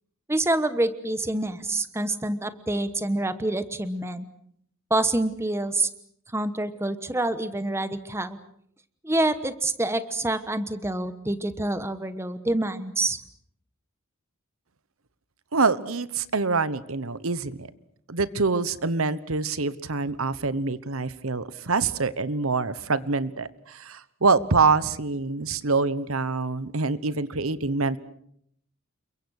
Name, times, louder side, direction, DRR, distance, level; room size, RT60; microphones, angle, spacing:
voice 1, 0.3-4.2 4.9-5.9 6.3-8.4 9.0-13.2, right 2 dB, 10° right, 12 dB, 1.2 m, -27 dB
voice 2, 15.5-17.7 18.1-28.0, right 4 dB, 75° right, 16 dB, 1.1 m, -25 dB
29.0 x 23.0 x 6.5 m, 0.69 s
head